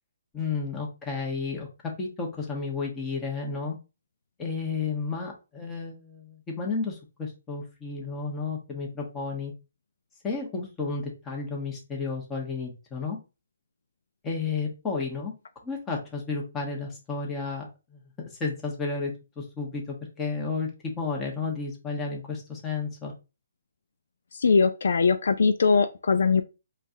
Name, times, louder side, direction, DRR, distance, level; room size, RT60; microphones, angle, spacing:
voice 1, 0.3-3.8 4.4-9.5 10.2-13.2 14.2-15.3 15.6-18.0 18.3-23.1, left 4 dB, 15° left, 1.1 m, -32 dB
voice 2, 24.4-26.4, left 4 dB, 70° left, 0.4 m, -21 dB
4.5 x 2.4 x 2.7 m
hypercardioid pair, 150°, 0 cm